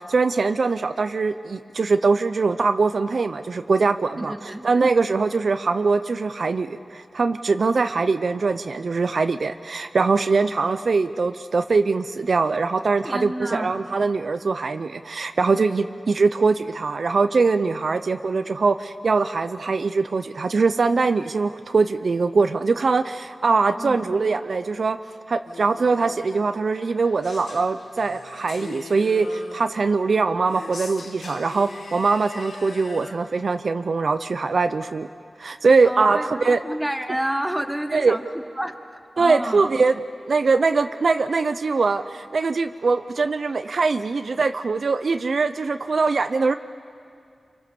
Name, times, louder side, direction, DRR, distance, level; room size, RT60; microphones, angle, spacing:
voice 1, 0.0-25.0 25.3-35.1 35.4-36.6 37.9-38.2 39.2-40.0 40.3-46.5, right 4 dB, 65° right, 10 dB, 0.6 m, -22 dB
voice 2, 4.2-4.7 13.0-13.8 23.8-24.0 35.8-38.2 38.6-39.6, equal, 5° right, 6 dB, 1.5 m, -29 dB
sound 1, 25.5-33.1, left 3 dB, 90° left, 1.6 m, -41 dB
27.5 x 24.5 x 7.0 m, 2.3 s
wide cardioid pair, 80°, 0 cm